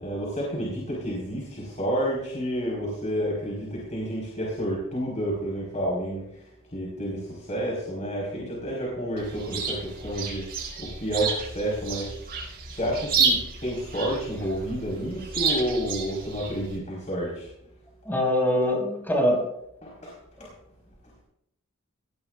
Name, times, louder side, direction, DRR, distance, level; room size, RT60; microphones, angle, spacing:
voice 1, 0.0-6.2 6.7-12.1 12.7-17.5 19.8-20.1, equal, 35° left, -4 dB, 4.7 m, -30 dB
Chirp tweet, 9.2-16.8, right 5 dB, 50° right, 5.4 m, -30 dB
voice 2, 18.1-19.5, left 1 dB, 10° left, 0 dB, 5.7 m, -23 dB
19.0 x 17.5 x 2.5 m, 0.76 s
head